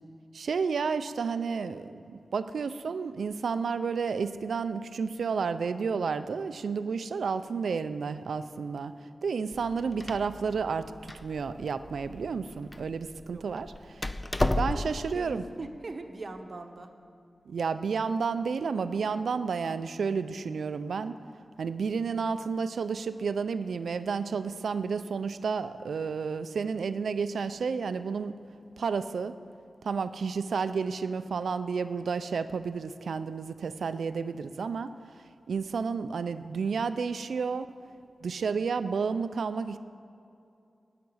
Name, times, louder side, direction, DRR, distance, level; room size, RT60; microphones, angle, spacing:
voice 1, 0.3-8.9 9.2-14.1 14.6-15.4 17.5-21.2 21.6-28.4 28.8-29.3 29.8-35.0 35.5-37.7 38.2-39.8, right 5 dB, 90° right, 12 dB, 0.5 m, -31 dB
Door, 9.5-15.1, left 1 dB, 20° left, 0.4 m, -34 dB
voice 2, 14.4-14.9 15.1-16.9, right 2 dB, 45° right, 6 dB, 0.9 m, -41 dB
13.0 x 5.9 x 9.6 m, 2.6 s
wide cardioid pair, 125°, 0 cm